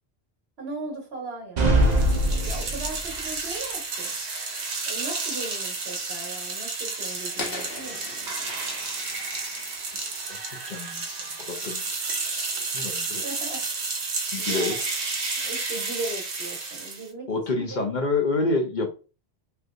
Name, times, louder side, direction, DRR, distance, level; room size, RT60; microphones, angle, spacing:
voice 1, 0.6-4.2 4.9-8.0 13.2-13.7 14.4-14.8 15.3-17.9, right 3 dB, 75° right, 1.5 m, -38 dB
sound 1, 1.6-3.2, right 1 dB, 50° right, 0.7 m, -22 dB
sound 2, 1.8-17.1, right 3 dB, 90° right, 1.0 m, -31 dB
sound 3, 7.4-10.4, left 3 dB, 70° left, 1.0 m, -39 dB
voice 2, 10.3-13.2 14.3-14.8 17.3-18.9, left 3 dB, 50° left, 0.7 m, -29 dB
3.3 x 2.9 x 2.5 m
omnidirectional pair, 1.1 m